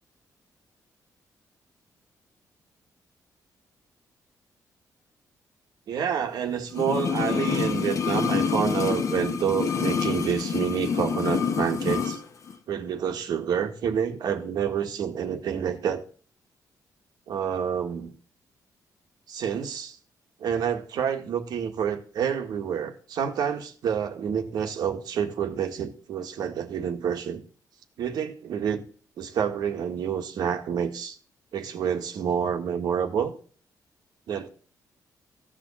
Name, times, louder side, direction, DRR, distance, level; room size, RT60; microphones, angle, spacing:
voice 1, 5.9-12.2 12.7-16.0 17.3-18.1 19.3-20.0 20.4-27.4 28.0-28.8 29.2-31.2 31.5-33.3 34.3-34.5, right 8 dB, 80° right, 1.7 m, -28 dB
sound 1, 6.7-12.2 12.5-12.6, left 6 dB, 50° left, 1.3 m, -27 dB
15.0 x 5.1 x 8.5 m
cardioid pair, 130°, 7 cm